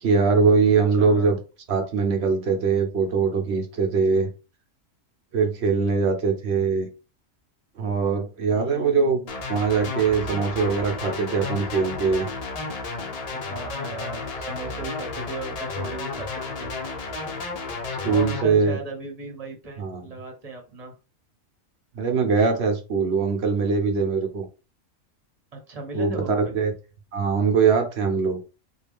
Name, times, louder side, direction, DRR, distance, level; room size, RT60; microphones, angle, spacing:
voice 1, 0.0-1.4 1.7-4.3 5.3-6.9 7.8-9.2 9.5-12.3 18.0-18.8 19.8-20.0 21.9-24.5 25.9-26.7 27.1-28.4, right 5 dB, 55° right, 1.0 m, -22 dB
voice 2, 0.9-1.4 8.5-9.3 13.3-16.7 18.0-20.9 25.5-26.6, right 2 dB, 30° right, 1.0 m, -37 dB
sound 1, 9.3-18.4, left 3 dB, 55° left, 0.4 m, -32 dB
3.6 x 2.3 x 3.4 m
omnidirectional pair, 1.4 m